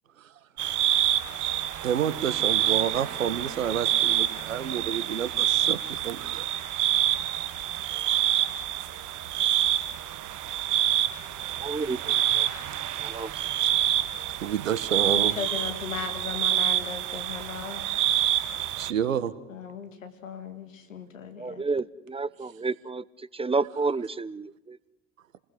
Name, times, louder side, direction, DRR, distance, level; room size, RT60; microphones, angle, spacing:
sound 1, 0.6-18.9, right 12 dB, 50° right, 1.7 m, -27 dB
voice 1, 1.8-6.5 14.3-15.4 18.8-19.3, right 9 dB, 85° right, 17 dB, 1.3 m, -29 dB
voice 2, 11.6-12.5 13.0-13.3 21.4-23.0 23.3-24.8, right 4 dB, 15° right, 20 dB, 0.8 m, -30 dB
voice 3, 15.0-17.8 19.5-21.6, left 6 dB, 85° left, 7 dB, 2.4 m, -37 dB
28.5 x 20.5 x 6.1 m, 0.90 s
figure-of-eight pair, 60°, 39 cm